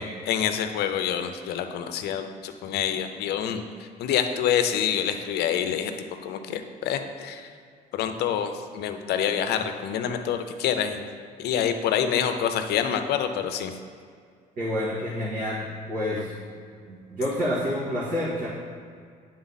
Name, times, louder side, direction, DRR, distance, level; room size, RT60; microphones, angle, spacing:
voice 1, 0.0-3.6 4.0-5.9 6.2-7.5 7.9-11.0 11.4-13.7, left 8 dB, 75° left, 7 dB, 0.6 m, -27 dB
voice 2, 14.6-16.3 16.9-18.5, left 1 dB, 55° right, -9 dB, 1.8 m, -28 dB
9.5 x 3.9 x 4.1 m, 2.1 s
cardioid pair, 110°, 17 cm